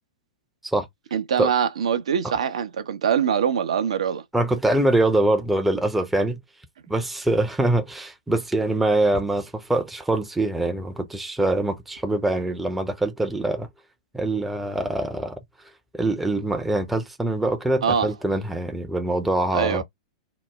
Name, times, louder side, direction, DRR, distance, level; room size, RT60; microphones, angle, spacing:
voice 1, 1.1-4.2 17.8-18.1 19.5-19.8, right 7 dB, 70° right, 0.6 m, -23 dB
voice 2, 4.3-6.4 6.9-13.7 14.1-15.4 15.9-19.8, right 2 dB, 5° right, 0.5 m, -24 dB
2.9 x 2.0 x 3.4 m
figure-of-eight pair, 105°, 3 cm